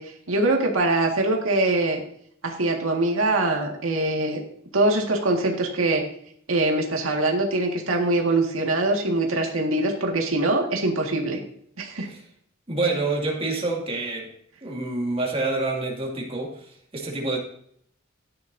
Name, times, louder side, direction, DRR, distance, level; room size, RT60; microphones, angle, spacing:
voice 1, 0.0-2.0 2.4-4.4 4.7-6.0 6.5-11.4 11.8-12.1, right 2 dB, 90° right, 1 dB, 1.8 m, -23 dB
voice 2, 12.7-14.3 14.6-17.4, right 2 dB, 30° right, -1 dB, 2.2 m, -27 dB
13.5 x 9.8 x 2.7 m, 0.66 s
head